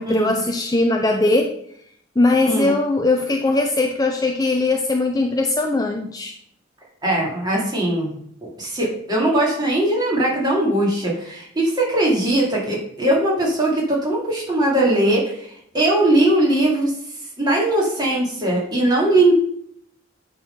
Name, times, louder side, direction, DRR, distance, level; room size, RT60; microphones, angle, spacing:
voice 1, 0.0-1.5 2.2-6.3, left 2 dB, 15° left, 3 dB, 0.4 m, -20 dB
voice 2, 7.0-8.1 8.4-16.9 17.4-19.3, right 1 dB, 20° right, -4 dB, 2.3 m, -20 dB
8.8 x 3.8 x 5.7 m, 0.69 s
head